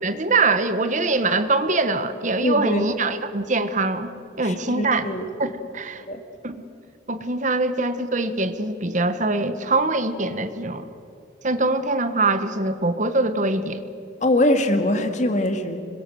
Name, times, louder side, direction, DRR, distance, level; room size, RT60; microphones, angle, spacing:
voice 1, 0.0-4.1 4.4-5.1 5.4-6.0 6.4-6.6 7.1-10.8 11.4-13.8, right 3 dB, 40° right, 11 dB, 1.2 m, -23 dB
voice 2, 2.4-2.9 4.4-5.2 6.1-6.2 14.2-15.8, left 1 dB, 40° left, 7 dB, 2.0 m, -22 dB
26.0 x 21.5 x 7.8 m, 2.5 s
head